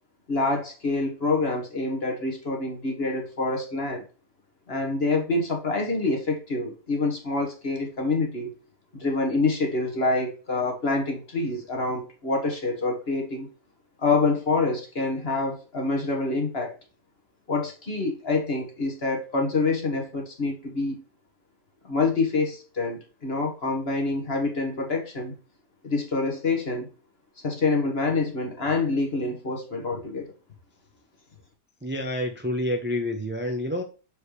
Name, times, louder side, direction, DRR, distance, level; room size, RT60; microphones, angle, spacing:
voice 1, 0.3-4.0 4.7-8.5 9.0-13.5 14.0-16.7 17.5-21.0 21.8-25.3 25.8-26.9 27.4-30.3, left 3 dB, 35° left, 1.8 m, -26 dB
voice 2, 31.8-33.8, left 1 dB, 10° right, 0.6 m, -28 dB
6.7 x 5.2 x 3.3 m
omnidirectional pair, 1.8 m